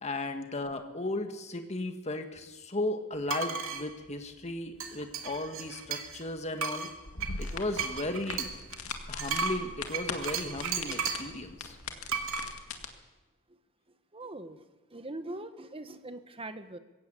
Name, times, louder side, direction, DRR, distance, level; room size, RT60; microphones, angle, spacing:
voice 1, 0.0-6.9 7.4-8.5 9.1-11.8, left 2 dB, 30° left, 6 dB, 1.9 m, -35 dB
sound 1, 3.3-3.8 4.8-6.2 6.6-11.3 12.1-12.5, right 5 dB, 65° right, 2.5 m, -34 dB
sound 2, 7.0-12.9, left 4 dB, 75° left, 2.1 m, -41 dB
voice 2, 14.1-16.8, right 2 dB, 25° right, 10 dB, 1.3 m, -42 dB
21.0 x 17.0 x 8.3 m, 1.1 s
head